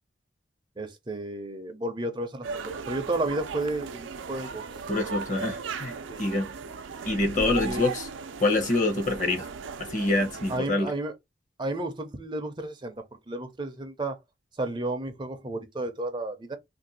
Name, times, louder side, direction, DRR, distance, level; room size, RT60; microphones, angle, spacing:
voice 1, 0.8-4.6 6.1-6.2 7.4-7.8 10.5-11.1 11.6-12.9 13.3-14.2 14.6-16.6, right 2 dB, 25° right, 0.5 m, -32 dB
sound 1, 2.4-10.6, right 5 dB, 85° right, 0.5 m, -37 dB
voice 2, 4.9-6.5 7.1-8.1 8.4-9.5 9.9-10.9, left 2 dB, 40° left, 0.9 m, -26 dB
2.6 x 2.2 x 4.0 m
head